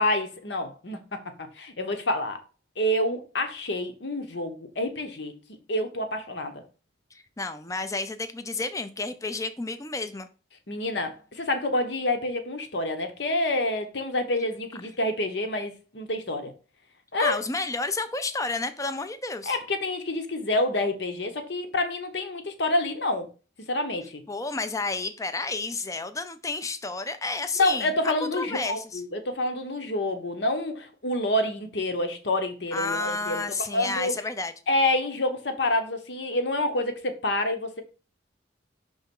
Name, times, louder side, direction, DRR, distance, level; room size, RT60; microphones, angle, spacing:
voice 1, 0.0-2.4 2.8-5.3 5.7-6.6 10.7-16.5 17.1-17.4 19.5-23.3 23.7-24.2 27.6-33.4 33.7-34.1 34.7-37.8, left 1 dB, 65° left, 1.0 m, -28 dB
voice 2, 7.1-10.3 17.2-19.6 24.3-27.9 28.3-29.0 32.7-34.5, left 3 dB, 20° left, 0.5 m, -31 dB
5.5 x 3.5 x 5.3 m
head